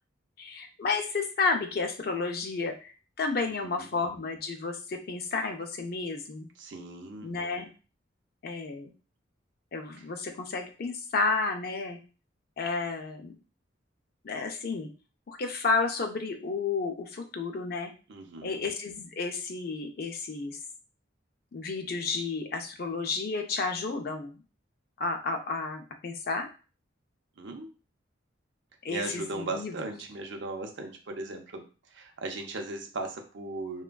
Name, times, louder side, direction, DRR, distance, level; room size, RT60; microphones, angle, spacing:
voice 1, 0.4-6.5 7.2-7.7 8.4-8.9 9.7-12.0 12.6-13.3 14.2-14.9 15.3-17.9 18.4-20.6 21.5-24.4 25.0-26.5 28.8-29.7, left 4 dB, 50° left, 5 dB, 0.4 m, -31 dB
voice 2, 6.6-7.3 18.1-18.6 27.4-27.7 28.9-31.7 31.9-33.8, right 2 dB, 65° right, 3 dB, 0.6 m, -37 dB
3.3 x 2.2 x 2.2 m, 0.35 s
head